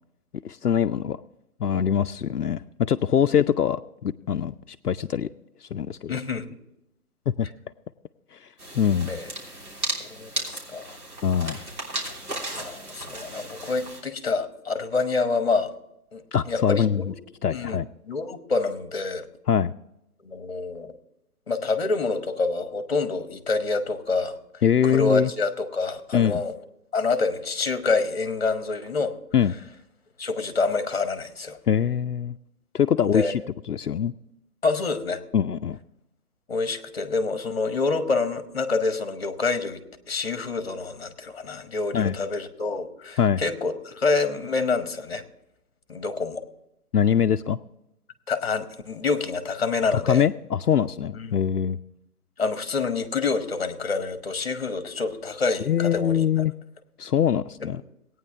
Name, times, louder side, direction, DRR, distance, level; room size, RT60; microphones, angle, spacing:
voice 1, 0.4-1.2 1.6-5.3 5.6-6.1 7.4-7.5 8.3-8.5 8.7-9.1 11.2-11.6 16.3-17.0 17.4-17.9 19.5-19.7 24.6-25.3 26.1-26.4 29.3-29.5 31.7-32.4 32.7-33.4 33.7-34.1 35.3-35.8 41.9-42.1 43.2-43.4 46.9-47.6 49.9-51.8 55.7-56.5 57.0-57.8, left 8 dB, 80° left, 9 dB, 0.6 m, -23 dB
voice 2, 6.1-6.4 9.1-9.3 10.0-11.0 12.5-15.7 16.1-17.1 17.5-17.8 18.0-19.3 20.2-20.9 21.5-24.4 24.8-26.5 26.9-29.1 30.2-31.6 33.1-33.3 34.6-35.2 36.5-45.2 45.9-46.4 48.3-50.2 51.1-51.4 52.4-56.2, left 4 dB, 40° left, 10 dB, 1.2 m, -27 dB
sound 1, 8.6-14.0, right 1 dB, 70° right, 3.3 m, -35 dB
17.0 x 9.3 x 3.5 m, 0.84 s
figure-of-eight pair, 145°, 45 cm